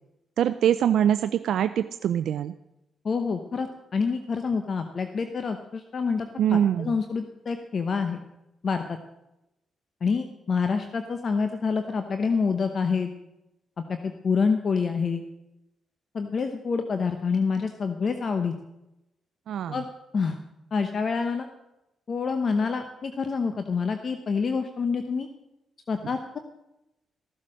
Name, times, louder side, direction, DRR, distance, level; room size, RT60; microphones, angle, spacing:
voice 1, 0.4-2.5 6.4-6.9 19.5-19.8, right 10 dB, 80° right, 11 dB, 0.4 m, -23 dB
voice 2, 3.0-8.2 8.6-9.0 10.0-13.1 13.9-15.2 16.1-18.5 19.7-19.9 20.1-20.4 20.7-21.5 22.1-25.3 25.9-26.4, left 5 dB, 50° left, 7 dB, 0.9 m, -27 dB
14.5 x 7.6 x 6.4 m, 0.91 s
cardioid pair, 70°, 0 cm